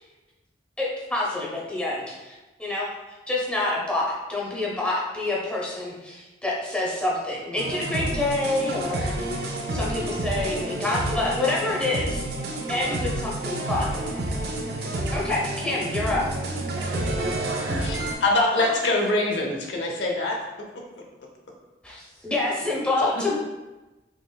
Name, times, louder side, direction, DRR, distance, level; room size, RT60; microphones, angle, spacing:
voice 1, 0.8-2.9 3.3-9.2 9.7-12.2 12.7-13.9 15.1-16.2 21.8-23.3, left 2 dB, 5° left, -5 dB, 0.6 m, -27 dB
sound 1, 7.6-18.1, right 1 dB, 55° right, 0.4 m, -29 dB
voice 2, 16.7-18.2 18.6-18.9 23.1-23.3, right 1 dB, 75° right, -2 dB, 0.8 m, -34 dB
voice 3, 17.8-20.4, left 2 dB, 80° left, 0 dB, 0.7 m, -24 dB
3.7 x 3.0 x 2.2 m, 1.1 s
head